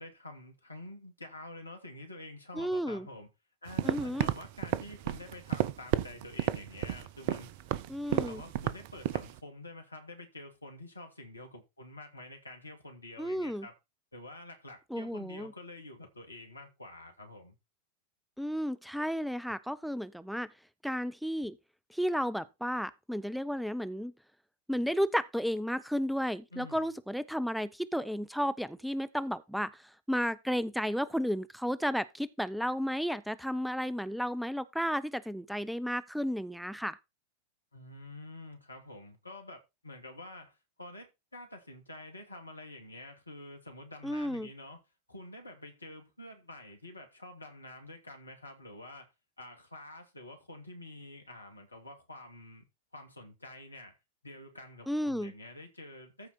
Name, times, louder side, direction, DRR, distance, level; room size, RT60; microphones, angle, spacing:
voice 1, 0.0-3.3 3.6-7.6 8.1-13.8 14.1-17.6 26.5-26.9 37.7-44.8 45.1-49.1 49.4-52.6 52.9-54.0 54.2-56.3, left 2 dB, 80° left, 2.5 m, -48 dB
voice 2, 2.6-3.1 3.8-4.3 7.9-8.4 13.2-13.7 14.9-15.5 18.4-20.5 20.8-21.6 21.9-24.1 24.7-29.8 30.1-37.0 44.0-44.5 54.9-55.3, equal, ahead, 0.5 m, -33 dB
sound 1, 3.7-9.4, right 12 dB, 50° right, 0.7 m, -32 dB
14.0 x 4.7 x 4.3 m
figure-of-eight pair, 90°, 0 cm